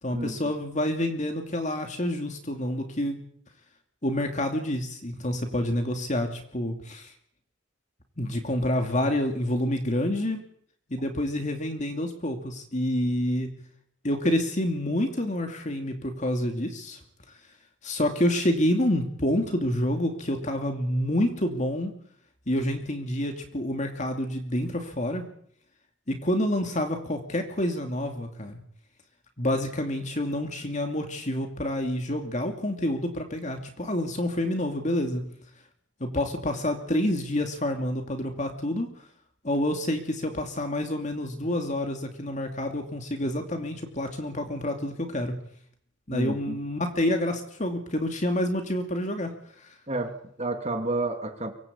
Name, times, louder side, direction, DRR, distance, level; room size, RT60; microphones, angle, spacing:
voice 1, 0.0-3.2 4.0-7.1 8.2-10.4 10.9-13.5 14.0-17.0 17.8-21.9 22.5-25.3 26.1-28.6 29.4-35.2 36.0-38.9 39.4-45.3 46.1-49.8, left 1 dB, 40° left, 4 dB, 2.7 m, -28 dB
voice 2, 46.1-46.6 49.9-51.5, right 2 dB, 35° right, 6 dB, 2.3 m, -30 dB
24.0 x 19.0 x 8.7 m, 0.65 s
head